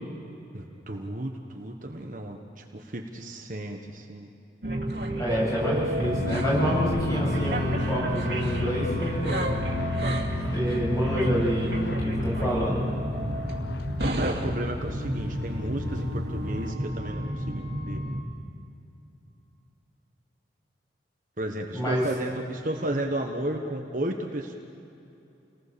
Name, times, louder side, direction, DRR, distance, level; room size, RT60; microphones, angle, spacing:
voice 1, 0.5-4.3 14.1-18.0 21.4-24.5, right 1 dB, 45° right, 2 dB, 1.3 m, -33 dB
sound 1, 4.6-18.2, right 1 dB, 60° right, 2.5 m, -30 dB
voice 2, 5.2-9.4 10.5-12.8 21.7-22.1, equal, 20° left, -5 dB, 7.5 m, -28 dB
sound 2, 6.0-16.7, left 3 dB, 70° left, 0.6 m, -34 dB
29.0 x 19.0 x 7.1 m, 2.8 s
head